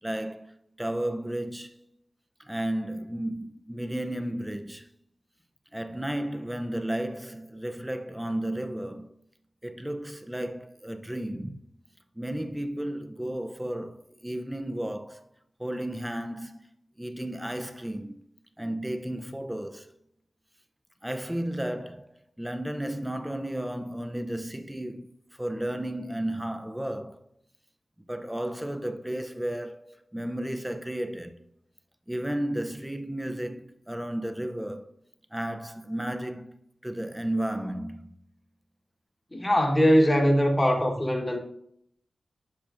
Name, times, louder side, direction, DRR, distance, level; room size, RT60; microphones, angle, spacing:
voice 1, 0.0-1.9 2.4-4.9 5.7-9.2 9.6-11.6 12.2-15.3 15.6-16.7 17.0-18.2 18.6-19.9 21.0-27.2 28.1-31.5 32.1-34.9 35.3-36.6 36.8-38.2, right 1 dB, 5° right, 0.5 m, -33 dB
voice 2, 39.3-41.4, equal, 20° left, 1.2 m, -21 dB
10.5 x 5.9 x 2.5 m
wide cardioid pair, 95°, 0 cm